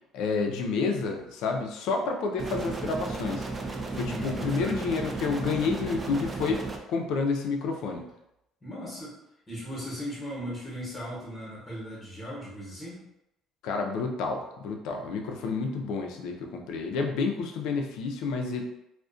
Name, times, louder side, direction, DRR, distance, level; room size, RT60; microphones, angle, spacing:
voice 1, 0.1-3.5 3.9-6.6 6.9-8.1 13.6-18.6, left 4 dB, 75° left, 3 dB, 0.4 m, -29 dB
sound 1, 2.4-6.8, right 3 dB, 25° right, 0.3 m, -34 dB
voice 2, 4.1-4.8 8.6-9.2 9.5-13.0, equal, 20° left, -6 dB, 0.9 m, -38 dB
2.4 x 2.1 x 2.4 m, 0.86 s
cardioid pair, 125°, 0 cm